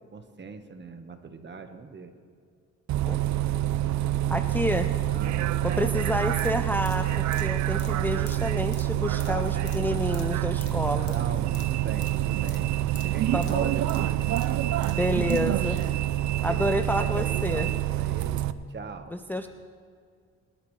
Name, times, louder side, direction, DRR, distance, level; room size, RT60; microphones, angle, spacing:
voice 1, 0.1-2.1 5.1-6.0 9.3-10.2 11.0-12.7 13.0-16.0 16.5-18.4 18.7-19.1, right 4 dB, 35° right, 7 dB, 1.4 m, -40 dB
Bus, 2.9-18.5, right 14 dB, 70° right, 0.6 m, -27 dB
voice 2, 4.3-4.9 5.6-11.1 13.3-13.7 15.0-15.8 16.4-17.7 19.1-19.5, left 1 dB, 5° left, 7 dB, 0.5 m, -29 dB
sound 1, 6.3-15.9 16.2-16.3, left 7 dB, 70° left, 1.7 m, -49 dB
23.0 x 12.5 x 3.3 m, 2.2 s
cardioid pair, 90°, 30 cm